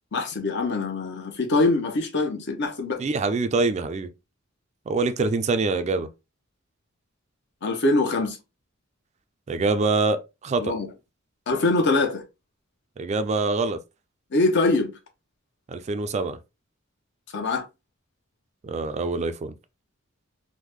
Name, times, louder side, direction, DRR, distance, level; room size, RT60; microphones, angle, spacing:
voice 1, 0.1-3.0 7.6-8.4 10.6-10.9 11.5-12.2 14.3-14.9 17.3-17.6, left 2 dB, 60° left, 0.7 m, -23 dB
voice 2, 3.0-4.1 4.9-6.1 9.5-10.7 13.0-13.8 15.7-16.4 18.6-19.5, right 3 dB, 35° right, 0.3 m, -25 dB
3.5 x 2.1 x 3.0 m
head